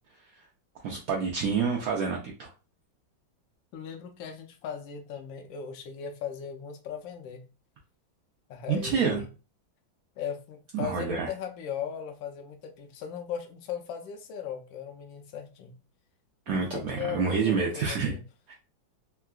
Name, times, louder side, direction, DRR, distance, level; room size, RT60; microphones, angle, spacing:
voice 1, 0.8-2.5 8.7-9.2 10.7-11.3 16.5-18.1 18.5-18.6, right 5 dB, 80° right, -1 dB, 0.8 m, -28 dB
voice 2, 3.7-7.4 8.5-9.3 10.2-15.7 16.5-18.2, left 8 dB, 85° left, 5 dB, 1.3 m, -38 dB
3.6 x 2.3 x 2.3 m, 0.33 s
omnidirectional pair, 2.0 m